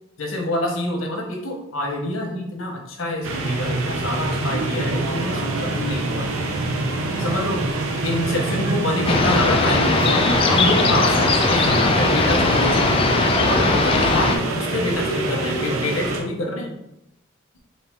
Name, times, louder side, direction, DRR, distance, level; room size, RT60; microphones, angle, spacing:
voice 1, 0.2-6.3 7.2-7.6 8.0-13.1 13.5-16.8, left 1 dB, 80° left, 1 dB, 1.0 m, -26 dB
sound 1, 3.2-16.2, right 2 dB, 90° right, 0.7 m, -25 dB
sound 2, 9.1-14.4, left 3 dB, 25° left, 0.3 m, -19 dB
4.2 x 2.8 x 3.5 m, 0.82 s
head